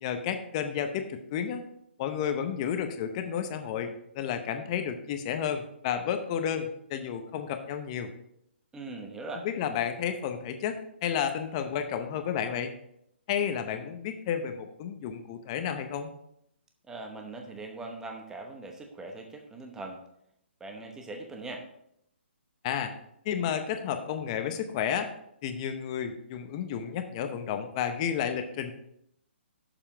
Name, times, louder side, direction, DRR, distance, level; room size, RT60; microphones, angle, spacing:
voice 1, 0.0-1.7 2.0-8.1 9.4-12.7 13.3-16.1 22.6-22.9 23.2-25.1 25.4-28.7, left 8 dB, 30° left, 7 dB, 0.7 m, -31 dB
voice 2, 8.7-9.5 16.9-20.0 20.6-21.7, right 2 dB, 10° right, 3 dB, 0.9 m, -41 dB
6.9 x 5.7 x 4.7 m, 0.75 s
hypercardioid pair, 150°, 6 cm